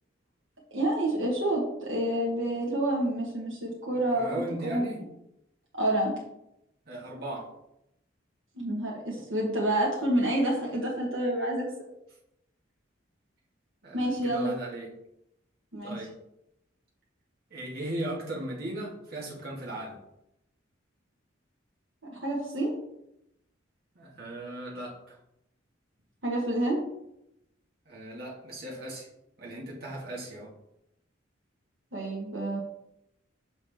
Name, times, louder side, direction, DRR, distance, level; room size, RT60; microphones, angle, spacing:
voice 1, 0.7-4.3 4.6-4.8 5.8-6.2 8.5-11.7 13.9-14.5 15.7-16.0 22.1-22.7 26.2-26.8 31.9-32.6, right 1 dB, 80° right, -4 dB, 1.3 m, -28 dB
voice 2, 3.9-5.0 6.9-7.5 13.8-14.9 15.8-16.1 17.5-20.0 24.0-25.2 27.9-29.1 29.4-30.5, right 1 dB, 50° right, -5 dB, 1.8 m, -37 dB
5.9 x 5.8 x 3.5 m, 0.84 s
head